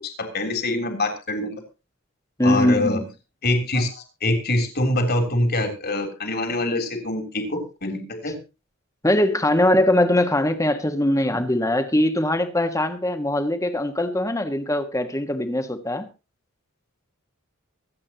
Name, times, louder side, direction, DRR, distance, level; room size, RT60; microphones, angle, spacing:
voice 1, 0.0-1.6 2.4-3.0 3.4-8.3, left 1 dB, 50° left, 3.3 m, -24 dB
voice 2, 2.4-3.0 9.0-16.1, left 1 dB, 15° left, 1.5 m, -21 dB
24.0 x 8.7 x 2.9 m
head